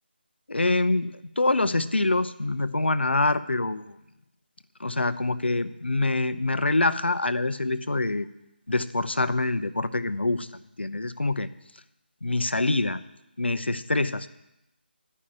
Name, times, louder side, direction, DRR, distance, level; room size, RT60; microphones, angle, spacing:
voice 1, 0.5-4.0 4.8-8.3 8.7-10.5 10.8-11.5 12.2-13.0 13.4-14.3, left 2 dB, 80° left, 11 dB, 0.7 m, -25 dB
11.5 x 5.6 x 8.7 m, 0.87 s
figure-of-eight pair, 155°, 6 cm